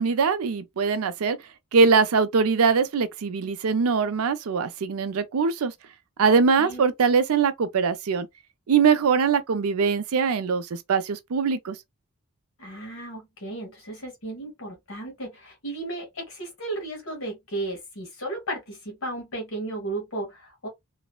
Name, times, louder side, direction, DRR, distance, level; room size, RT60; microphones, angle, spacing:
voice 1, 0.0-1.4 1.7-5.7 6.2-8.3 8.7-11.8, right 5 dB, 85° right, 0.4 m, -22 dB
voice 2, 12.6-20.7, right 2 dB, 70° left, 1.5 m, -34 dB
3.1 x 2.0 x 2.2 m
head